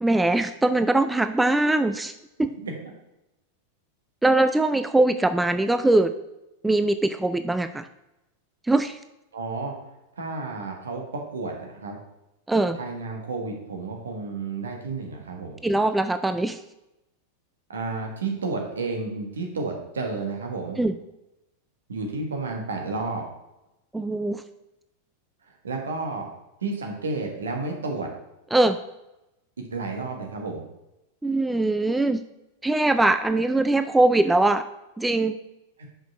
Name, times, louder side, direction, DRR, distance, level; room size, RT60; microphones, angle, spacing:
voice 1, 0.0-2.1 2.4-2.5 4.2-6.1 6.6-7.9 8.6-9.0 12.5-12.8 15.6-16.6 20.8-20.9 23.9-24.4 28.5-28.8 31.2-32.2 32.6-34.6 35.0-35.4, right 2 dB, 5° right, 11 dB, 0.3 m, -21 dB
voice 2, 9.3-9.7 10.2-12.0 12.8-15.6 17.7-20.8 21.9-23.2 25.6-26.3 26.6-28.1 29.7-30.6 35.8-35.9, right 3 dB, 70° right, 2 dB, 1.5 m, -31 dB
6.2 x 5.2 x 5.5 m, 0.93 s
figure-of-eight pair, 90°, 0 cm